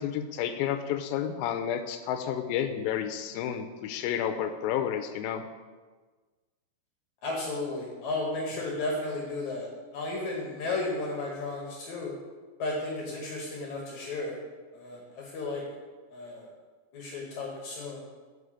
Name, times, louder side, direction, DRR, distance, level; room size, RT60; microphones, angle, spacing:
voice 1, 0.0-5.4, left 9 dB, 85° left, 6 dB, 2.3 m, -31 dB
voice 2, 7.2-12.1 12.6-14.4 14.7-15.6 16.1-16.5 16.9-18.0, left 2 dB, 65° left, -2 dB, 2.0 m, -34 dB
8.0 x 5.6 x 4.9 m, 1.4 s
omnidirectional pair, 4.3 m